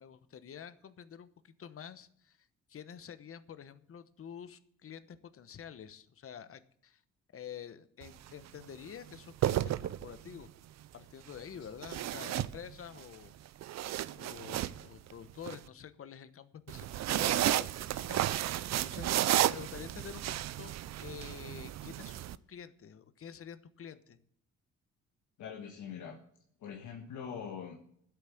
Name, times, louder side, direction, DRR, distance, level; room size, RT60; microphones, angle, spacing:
voice 1, 0.0-7.0 7.3-10.5 10.9-13.3 14.1-19.1 19.4-24.2, left 8 dB, 45° left, 12 dB, 1.1 m, -48 dB
sound 1, 8.0-8.3 9.2-10.4 11.8-13.0 13.5-15.6 16.7-22.4, right 13 dB, 60° right, 0.5 m, -32 dB
voice 2, 25.4-26.2 26.6-27.8, left 7 dB, 75° left, 2 dB, 1.5 m, -43 dB
10.5 x 8.3 x 8.3 m, 0.67 s
cardioid pair, 90°, 30 cm